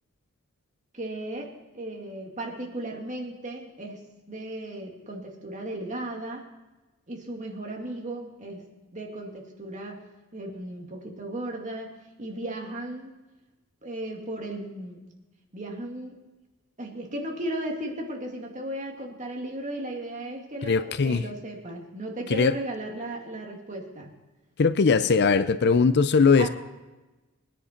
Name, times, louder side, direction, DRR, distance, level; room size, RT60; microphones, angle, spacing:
voice 1, 0.9-1.5 1.7-6.4 7.1-10.0 10.3-11.9 12.2-13.1 13.8-15.1 15.5-16.2 16.8-24.1 26.4-26.5, right 1 dB, 35° right, 0 dB, 2.2 m, -36 dB
voice 2, 20.6-21.2 22.3-22.5 24.6-26.5, left 5 dB, 55° left, 13 dB, 0.5 m, -20 dB
20.5 x 10.0 x 4.4 m, 1.1 s
head